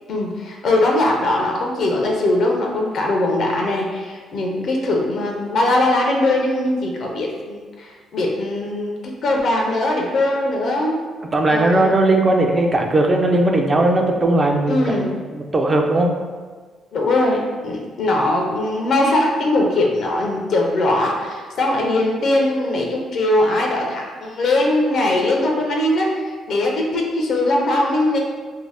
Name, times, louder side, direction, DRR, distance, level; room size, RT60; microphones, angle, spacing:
voice 1, 0.1-10.9 11.5-11.9 14.7-15.2 16.9-28.2, left 1 dB, 65° left, 0 dB, 0.5 m, -20 dB
voice 2, 11.3-15.1 15.3-16.1, right 2 dB, 30° right, 2 dB, 0.3 m, -18 dB
2.6 x 2.0 x 3.3 m, 1.5 s
cardioid pair, 90°, 0 cm